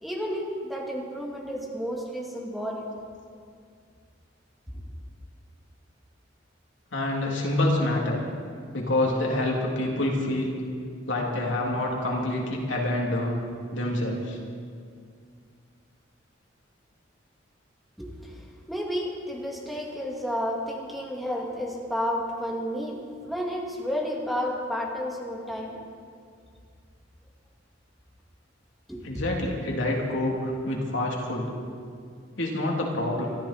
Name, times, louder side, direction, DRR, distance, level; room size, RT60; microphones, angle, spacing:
voice 1, 0.0-2.8 18.0-25.8 28.9-29.1, equal, ahead, -3 dB, 2.4 m, -31 dB
voice 2, 6.9-8.2 8.7-10.6 11.1-13.4 13.7-14.4 29.0-31.5 32.4-33.3, left 1 dB, 80° left, -1 dB, 3.0 m, -27 dB
23.0 x 14.0 x 4.4 m, 2.2 s
head